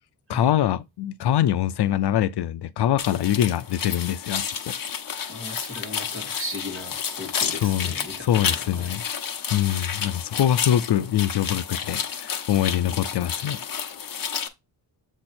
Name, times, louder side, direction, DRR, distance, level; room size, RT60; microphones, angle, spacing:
voice 1, 0.3-4.7 7.6-7.9 8.3-9.0 9.5-13.6, left 11 dB, 65° left, 0.5 m, -24 dB
sound 1, 3.0-14.5, left 7 dB, 50° left, 0.9 m, -31 dB
voice 2, 5.3-9.0 12.8-13.0, left 1 dB, 30° right, 2.3 m, -37 dB
7.6 x 3.0 x 4.2 m
wide cardioid pair, 175°, 43 cm